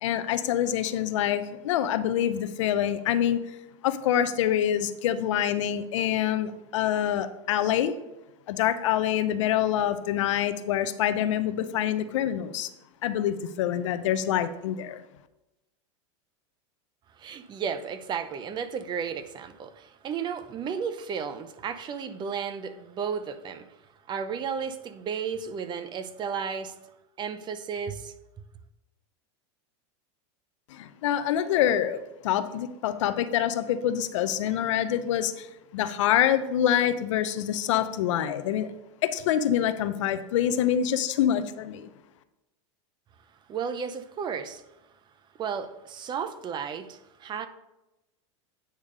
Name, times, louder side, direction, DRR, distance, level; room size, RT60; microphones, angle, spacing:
voice 1, 0.0-3.4 3.8-7.9 8.5-12.7 13.0-15.0 30.7-35.5 35.7-38.7 39.0-41.9, left 10 dB, 75° left, 0.6 m, -26 dB
voice 2, 17.2-23.7 24.1-26.7 27.2-28.1 43.5-44.6 45.4-47.5, right 6 dB, 30° right, 0.6 m, -33 dB
8.8 x 3.5 x 5.4 m
supercardioid pair, 120°, 16 cm